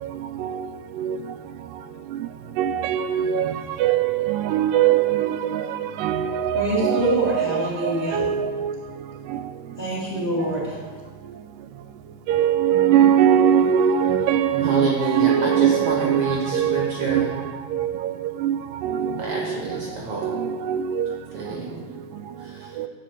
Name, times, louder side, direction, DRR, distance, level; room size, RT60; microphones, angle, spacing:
voice 1, 2.6-3.5 3.8-8.7 9.3-9.4 12.3-17.3 17.7-19.9 20.2-21.1 22.8-22.9, right 9 dB, 85° right, 2.2 m, -22 dB
voice 2, 6.5-8.3 9.8-10.8, equal, 35° left, 2.5 m, -25 dB
voice 3, 14.6-17.3 19.2-20.3 21.3-21.8 22.4-22.7, right 3 dB, 55° right, 1.7 m, -28 dB
10.0 x 5.2 x 7.9 m
omnidirectional pair, 3.9 m